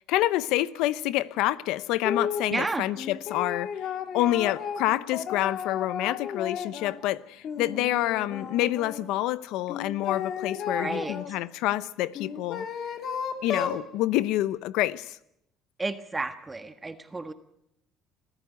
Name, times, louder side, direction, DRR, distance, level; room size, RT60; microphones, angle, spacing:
voice 1, 0.1-3.7 4.1-12.7 13.4-15.2, left 15 dB, 80° left, 0.8 m, -27 dB
sound 1, 2.0-2.5 3.0-7.0 7.4-9.0 9.7-11.3 12.1-13.8, left 7 dB, 55° left, 2.6 m, -33 dB
voice 2, 2.5-2.8 10.8-11.4 15.8-17.3, right 3 dB, 20° right, 1.4 m, -32 dB
26.0 x 14.0 x 9.5 m
cardioid pair, 105°, 0 cm